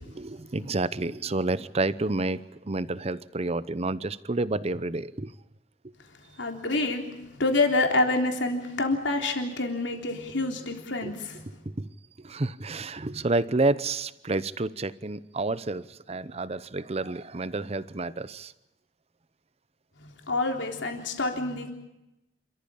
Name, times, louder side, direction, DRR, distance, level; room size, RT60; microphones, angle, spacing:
voice 1, 0.1-5.3 11.0-11.1 11.8-11.9 12.2-18.5, right 2 dB, 35° right, 16 dB, 0.8 m, -29 dB
voice 2, 6.4-7.1 7.4-11.5 20.0-21.7, left 2 dB, 90° left, 3 dB, 3.6 m, -27 dB
28.0 x 14.0 x 8.6 m, 0.93 s
head